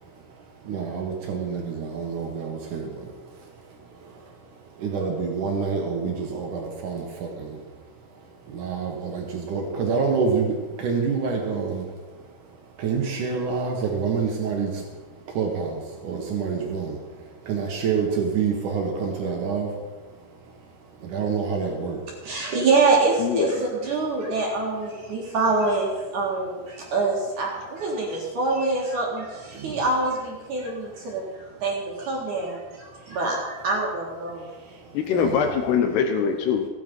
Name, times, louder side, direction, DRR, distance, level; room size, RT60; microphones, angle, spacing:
voice 1, 0.6-3.1 3.4-4.3 4.8-7.6 8.5-11.9 12.8-14.8 15.3-19.8 21.0-22.0 29.5-29.8 34.6-34.8 35.1-35.5, right 5 dB, 80° right, 1 dB, 1.8 m, -27 dB
voice 2, 22.2-31.2 31.6-34.5, right 3 dB, 55° right, -2 dB, 2.4 m, -25 dB
voice 3, 23.2-23.6 34.9-36.7, left 7 dB, 80° left, 6 dB, 2.4 m, -23 dB
16.0 x 9.7 x 5.4 m, 1.4 s
omnidirectional pair, 5.8 m